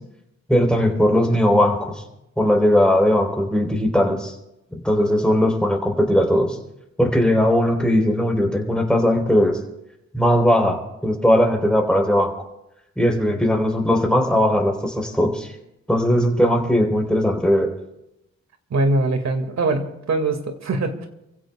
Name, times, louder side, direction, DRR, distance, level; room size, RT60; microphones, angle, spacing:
voice 1, 0.5-2.0 2.4-4.3 4.7-6.6 7.0-9.6 10.1-12.3 13.0-15.5 15.9-17.7, equal, 5° left, 1 dB, 3.6 m, -19 dB
voice 2, 18.7-21.1, right 2 dB, 65° right, 5 dB, 2.0 m, -22 dB
29.5 x 16.0 x 2.3 m, 0.89 s
cardioid pair, 85°, 29 cm